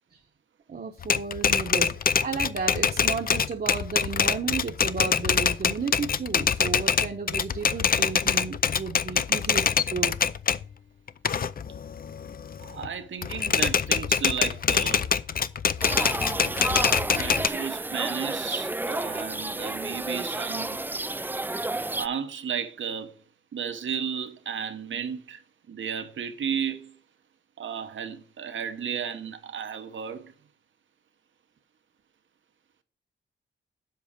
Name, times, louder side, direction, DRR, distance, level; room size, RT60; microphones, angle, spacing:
voice 1, 0.7-1.9 2.2-10.2, right 5 dB, 50° right, 1.0 m, -33 dB
Typewriter, 1.0-10.6 11.1-12.9 13.2-17.5, left 7 dB, 50° left, 0.5 m, -25 dB
voice 2, 12.6-15.1 17.1-20.8 22.0-23.1 23.5-25.4 25.7-27.0 27.6-30.3, right 7 dB, 80° right, 1.0 m, -33 dB
sound 1, 15.8-22.1, right 2 dB, 10° right, 0.3 m, -31 dB
7.7 x 4.8 x 7.1 m
cardioid pair, 70°, 20 cm